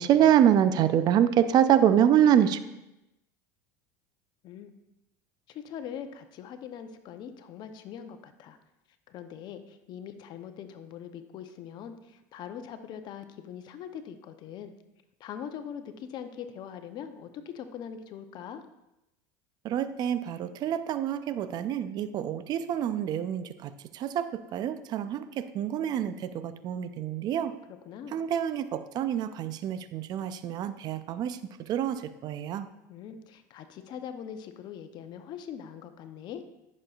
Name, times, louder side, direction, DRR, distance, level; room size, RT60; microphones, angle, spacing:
voice 1, 0.0-2.6 19.6-27.6 28.1-32.7, right 10 dB, 45° right, 12 dB, 0.6 m, -26 dB
voice 2, 5.5-8.6 9.1-14.7 15.2-17.3 17.5-18.6 27.9-28.2 32.9-36.4, left 8 dB, 50° left, 9 dB, 0.8 m, -42 dB
10.0 x 6.4 x 2.4 m, 0.91 s
supercardioid pair, 100°, 9 cm